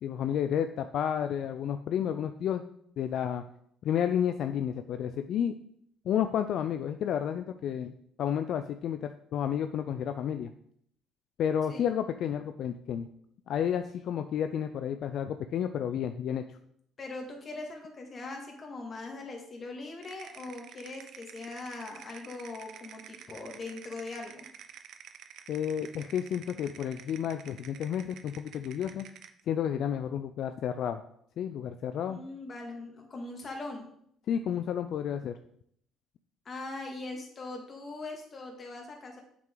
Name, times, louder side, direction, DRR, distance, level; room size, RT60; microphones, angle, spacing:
voice 1, 0.0-2.6 3.0-3.4 3.8-5.6 6.1-7.9 8.2-10.5 11.4-13.1 13.5-16.6 25.5-29.1 29.5-31.0 31.4-32.2 34.3-35.4, left 9 dB, 65° left, 8 dB, 0.4 m, -31 dB
voice 2, 17.0-24.5 32.1-33.9 36.5-39.2, left 2 dB, 35° left, 2 dB, 2.1 m, -41 dB
sound 1, 20.0-29.4, right 9 dB, 70° right, 0.6 m, -50 dB
7.4 x 6.1 x 3.9 m, 0.68 s
cardioid pair, 100°, 0 cm